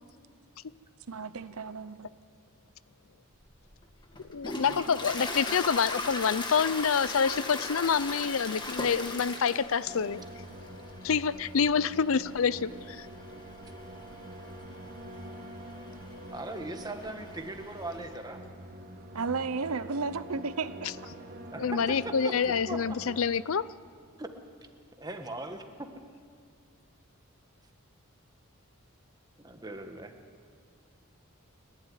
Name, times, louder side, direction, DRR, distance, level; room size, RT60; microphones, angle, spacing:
voice 1, 1.1-2.1 19.1-21.2, right 4 dB, 90° right, 13 dB, 0.9 m, -33 dB
Toilet flush, 3.4-18.1, left 2 dB, 20° left, 1.7 m, -40 dB
voice 2, 4.3-10.2 11.0-13.1 21.6-23.7, left 6 dB, 70° left, 18 dB, 0.5 m, -27 dB
sound 1, 9.9-23.2, right 1 dB, 40° right, 1.7 m, -46 dB
voice 3, 16.3-18.4 21.5-21.8 22.2-22.3 22.7-22.8 24.2-24.3 25.0-25.7 29.4-30.1, right 2 dB, 20° right, 5 dB, 1.5 m, -39 dB
29.5 x 12.0 x 9.7 m, 2.1 s
head